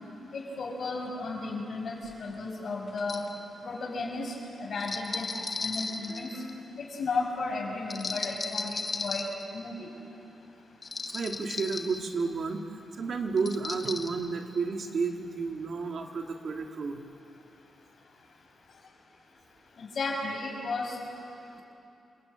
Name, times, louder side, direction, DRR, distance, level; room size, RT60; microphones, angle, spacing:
voice 1, 0.3-3.2 3.6-4.3 4.6-6.3 6.8-9.2 9.5-9.9 19.8-21.0, left 3 dB, 60° left, 1 dB, 6.2 m, -34 dB
sound 1, 2.1-2.2 3.0-3.3 4.8-6.6 7.9-9.4 10.8-12.0 13.4-14.1, left 4 dB, 40° left, 1.6 m, -35 dB
voice 2, 11.1-12.7 12.9-17.0, right 4 dB, 55° right, 3 dB, 2.3 m, -31 dB
28.5 x 20.5 x 8.9 m, 2.8 s
cardioid pair, 105°, 0 cm